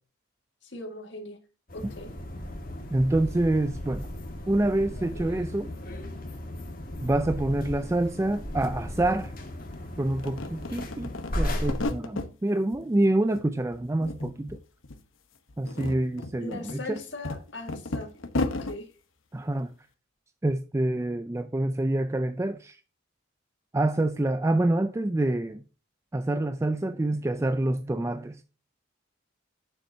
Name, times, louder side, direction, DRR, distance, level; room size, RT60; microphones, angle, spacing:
voice 1, 0.6-1.4 1.7-2.1 16.4-18.1 18.4-18.9 27.9-28.0, left 2 dB, 60° left, 1.8 m, -40 dB
sound 1, 1.7-11.9, left 1 dB, 45° left, 1.7 m, -36 dB
voice 2, 2.9-4.1 4.5-5.7 7.0-9.3 10.0-14.6 15.6-17.0 19.3-19.7 20.4-22.8 23.7-25.6 26.1-28.4, right 1 dB, 15° right, 0.3 m, -27 dB
sound 2, 8.3-8.4 8.6-9.8 10.1-12.3 12.7-13.5 13.7-14.6 14.8-15.0 15.5-18.8, left 2 dB, 80° left, 1.0 m, -34 dB
9.3 x 7.1 x 2.7 m
head